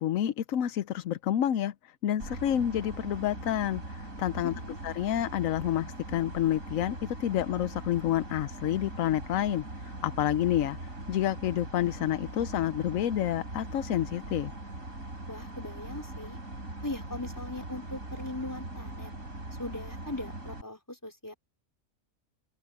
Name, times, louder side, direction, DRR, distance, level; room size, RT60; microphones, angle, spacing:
voice 1, 0.0-1.7 2.0-4.5 4.8-10.8 11.1-14.5, left 11 dB, 80° left, 1.1 m, -29 dB
sound 1, 2.2-20.6, right 2 dB, 80° right, 5.4 m, -41 dB
voice 2, 4.4-4.8 15.3-16.4 16.8-19.1 19.6-21.3, left 2 dB, 15° left, 4.8 m, -39 dB
open air
omnidirectional pair, 1.4 m